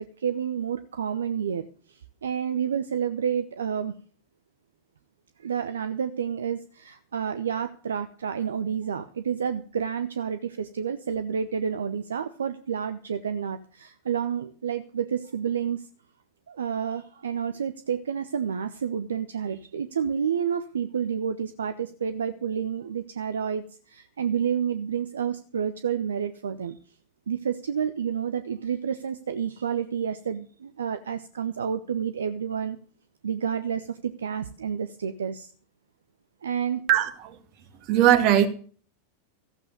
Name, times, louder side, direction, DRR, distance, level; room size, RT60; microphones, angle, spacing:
voice 1, 0.0-3.9 5.4-15.9 16.5-26.8 27.3-32.8 33.2-35.5 36.4-36.8, right 7 dB, 70° right, 11 dB, 0.8 m, -29 dB
voice 2, 36.9-37.4 37.9-38.5, right 11 dB, 40° right, 7 dB, 2.2 m, -19 dB
14.5 x 8.2 x 6.7 m, 0.43 s
figure-of-eight pair, 90°, 0 cm